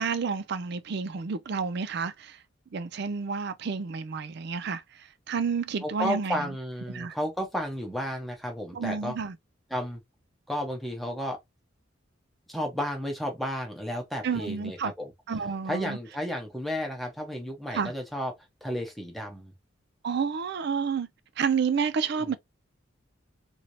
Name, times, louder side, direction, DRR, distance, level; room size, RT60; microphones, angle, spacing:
voice 1, 0.0-2.4 2.7-6.5 6.9-7.2 8.7-9.4 14.2-14.9 15.3-16.0 17.7-17.9 20.0-21.1 21.4-22.4, right 5 dB, 55° right, 0.4 m, -30 dB
voice 2, 5.8-9.1 9.7-10.0 10.5-11.4 12.5-15.1 15.7-18.3 18.6-19.5 22.2-22.4, equal, ahead, 0.9 m, -32 dB
2.9 x 2.6 x 2.9 m
head